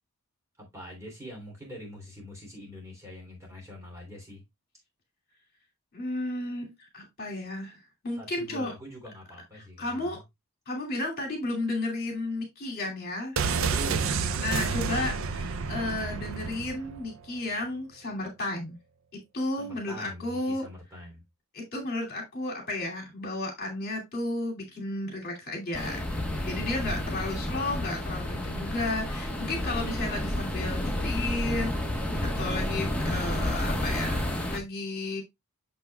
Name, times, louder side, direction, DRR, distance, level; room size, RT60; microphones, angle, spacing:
voice 1, 0.6-4.4 8.2-10.2 13.6-14.2 19.6-21.2 26.6-27.8 32.1-33.0, equal, 15° right, 3.1 m, -44 dB
voice 2, 5.9-8.7 9.8-10.2 10.7-13.4 14.4-18.8 19.3-20.6 21.5-26.0 26.3-31.8 32.4-35.2, left 2 dB, 45° left, 2.6 m, -33 dB
sound 1, 13.4-17.1 17.4-17.5, right 5 dB, 65° right, 0.5 m, -30 dB
sound 2, 25.7-34.6, left 1 dB, 5° left, 1.3 m, -30 dB
8.4 x 7.0 x 2.3 m
head